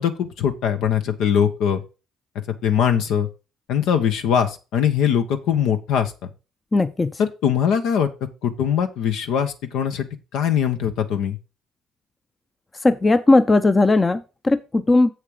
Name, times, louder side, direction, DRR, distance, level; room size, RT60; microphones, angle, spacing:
voice 1, 0.0-1.8 2.6-3.3 3.7-6.3 7.2-8.1 8.4-11.4, left 8 dB, 70° left, 7 dB, 1.1 m, -21 dB
voice 2, 6.7-7.1 12.8-15.1, left 2 dB, 25° left, 11 dB, 0.7 m, -17 dB
7.4 x 6.4 x 4.9 m, 0.31 s
hypercardioid pair, 60°, 0 cm